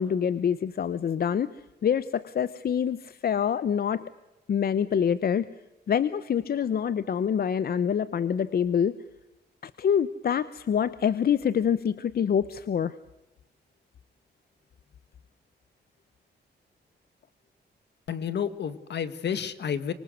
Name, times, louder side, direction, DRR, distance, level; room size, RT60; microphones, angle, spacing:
voice 1, 0.0-4.1 4.5-5.5 5.9-9.0 9.6-13.0, left 8 dB, 60° left, 16 dB, 0.8 m, -26 dB
voice 2, 18.1-19.9, left 8 dB, 75° left, 13 dB, 1.9 m, -30 dB
25.5 x 24.5 x 7.9 m, 1.0 s
wide cardioid pair, 130°, 18 cm